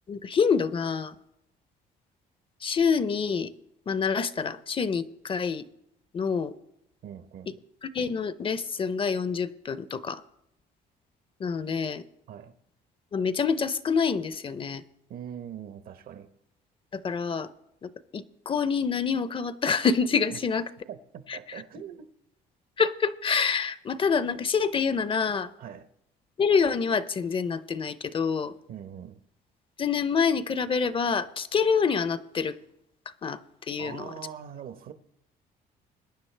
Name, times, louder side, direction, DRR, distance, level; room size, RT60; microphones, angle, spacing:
voice 1, 0.1-1.1 2.6-3.5 3.9-5.6 6.1-6.5 7.8-10.2 11.4-12.0 13.1-14.8 16.9-17.5 17.8-20.7 21.3-21.6 22.8-25.5 26.4-28.5 29.8-32.6 33.2-33.4 33.7-34.1, left 5 dB, 30° left, 0.6 m, -27 dB
voice 2, 7.0-7.6 12.3-12.5 15.1-16.3 20.3-20.4 20.9-22.1 25.6-25.8 28.7-29.2 33.8-34.9, right 9 dB, 60° right, 0.9 m, -42 dB
21.5 x 9.7 x 3.3 m
cardioid pair, 110°, 17 cm